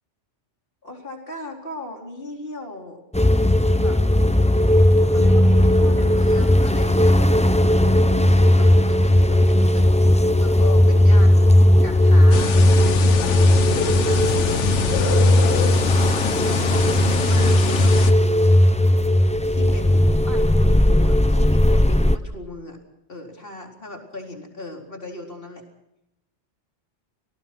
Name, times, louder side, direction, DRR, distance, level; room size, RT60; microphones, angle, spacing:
voice 1, 0.8-3.0 3.8-4.0 5.1-9.9 10.4-11.5 11.8-12.6 13.7-15.3 16.4-18.6 19.5-22.8 23.1-25.6, left 1 dB, 50° left, 1 dB, 4.4 m, -37 dB
sound 1, 3.1-22.2, left 1 dB, 10° left, 0.5 m, -16 dB
sound 2, 12.3-18.1, left 7 dB, 80° left, 1.3 m, -25 dB
27.0 x 19.0 x 6.1 m, 0.84 s
omnidirectional pair, 1.2 m